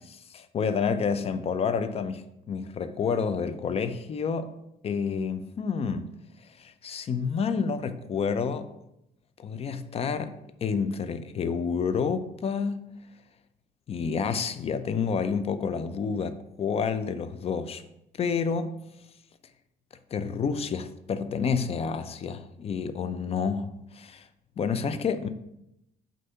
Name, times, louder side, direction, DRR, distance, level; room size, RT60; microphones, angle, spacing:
voice 1, 0.3-4.5 4.8-6.1 6.6-8.7 9.4-10.3 10.6-12.9 13.9-17.8 18.2-18.8 20.1-24.3 24.6-25.3, left 6 dB, 35° left, 0.5 m, -29 dB
6.4 x 2.7 x 5.6 m
cardioid pair, 110°, 17 cm